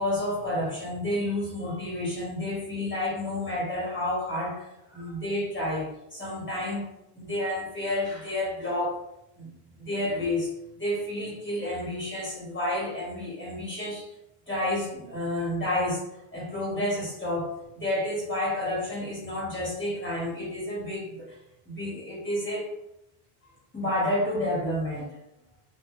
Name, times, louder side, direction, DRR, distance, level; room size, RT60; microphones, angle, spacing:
voice 1, 0.0-6.9 7.1-9.0 9.4-14.1 14.5-16.0 16.3-21.4 21.6-22.7 23.7-25.2, left 1 dB, 15° left, -7 dB, 0.8 m, -30 dB
2.1 x 2.1 x 2.9 m, 0.84 s
omnidirectional pair, 1.0 m